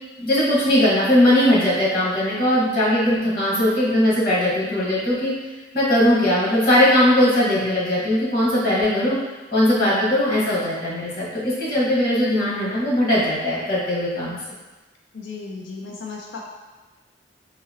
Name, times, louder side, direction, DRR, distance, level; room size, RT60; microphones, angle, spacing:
voice 1, 0.2-5.3 5.7-9.2 9.5-14.4, left 1 dB, 55° left, -7 dB, 1.2 m, -19 dB
voice 2, 15.1-16.4, left 4 dB, 85° left, 0 dB, 0.4 m, -35 dB
3.9 x 2.7 x 2.7 m, 1.2 s
head